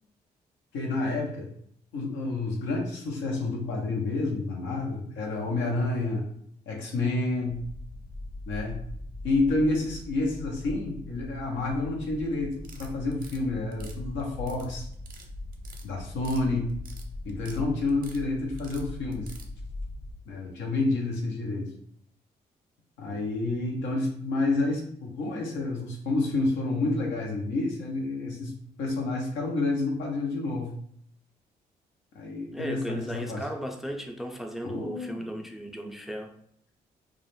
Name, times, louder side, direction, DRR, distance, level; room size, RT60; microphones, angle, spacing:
voice 1, 0.7-1.5 1.9-6.2 6.7-7.6 8.5-8.8 9.2-14.9 15.8-16.7 17.2-19.3 20.2-21.7 23.0-28.5 28.8-30.7 32.1-33.4 34.6-35.3, left 2 dB, 80° left, 0.7 m, -29 dB
sound 1, 7.5-20.1, left 2 dB, 45° left, 0.7 m, -41 dB
sound 2, 12.6-13.4 13.7-14.7 14.9-15.3 15.5-16.4 16.7-17.6 17.9-18.2 18.6-19.5, right 4 dB, 50° right, 0.6 m, -49 dB
voice 2, 32.5-36.3, equal, ahead, 0.4 m, -36 dB
2.3 x 2.0 x 3.0 m
supercardioid pair, 50°, 19 cm